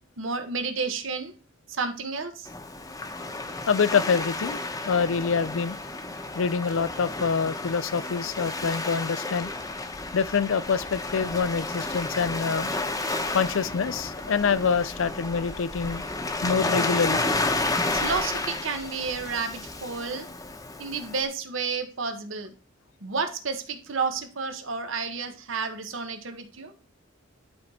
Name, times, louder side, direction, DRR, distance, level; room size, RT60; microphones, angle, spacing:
voice 1, 0.2-1.3 1.7-2.5 17.9-20.3 20.8-22.5 23.0-26.7, right 4 dB, 75° right, 1.2 m, -31 dB
Waves surf, 2.4-21.2, left 2 dB, 20° left, 0.9 m, -31 dB
voice 2, 3.7-4.6 4.9-5.8 6.3-9.5 10.1-12.7 13.3-16.1 16.4-17.2, left 5 dB, 75° left, 0.5 m, -26 dB
11.0 x 4.0 x 4.3 m
head